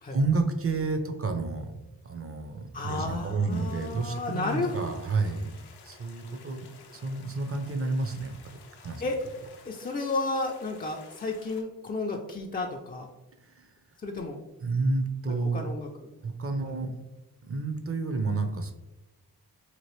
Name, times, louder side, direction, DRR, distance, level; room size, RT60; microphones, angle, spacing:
voice 1, 0.1-5.5 5.8-6.7 6.9-9.0 13.4-13.7 14.6-15.7 16.2-16.9 17.4-18.7, right 3 dB, 35° right, 6 dB, 0.5 m, -30 dB
voice 2, 2.7-4.8 9.0-9.2 9.7-13.1 14.0-14.4 15.3-15.9 16.6-16.8, left 3 dB, 25° left, 1 dB, 0.3 m, -32 dB
sound 1, 3.5-11.6, left 5 dB, 80° left, 0.6 m, -53 dB
2.9 x 2.5 x 3.1 m, 0.98 s
cardioid pair, 55°, 38 cm